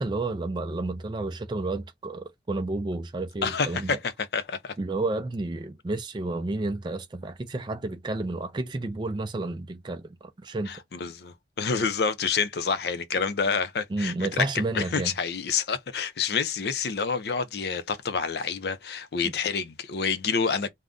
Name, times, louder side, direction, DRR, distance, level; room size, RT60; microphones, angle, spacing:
voice 1, 0.0-4.0 4.8-10.1 10.4-10.7 13.9-15.1, right 2 dB, 25° right, 0.3 m, -31 dB
voice 2, 3.4-4.7 10.7-20.7, left 5 dB, 60° left, 0.5 m, -28 dB
2.5 x 2.1 x 3.5 m
head